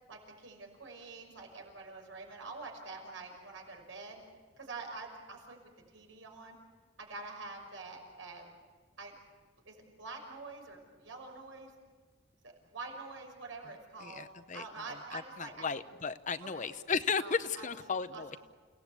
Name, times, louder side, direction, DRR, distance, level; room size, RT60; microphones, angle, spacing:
voice 1, 0.1-4.2 4.6-5.6 5.9-6.6 7.0-8.5 9.0-9.1 9.7-11.7 12.4-14.3 14.5-15.7 16.5-16.7 17.2-17.7 18.1-18.4, right 3 dB, 85° right, 2 dB, 6.0 m, -46 dB
voice 2, 14.0-18.4, left 5 dB, 40° left, 12 dB, 0.8 m, -35 dB
29.5 x 18.0 x 8.2 m, 1.5 s
head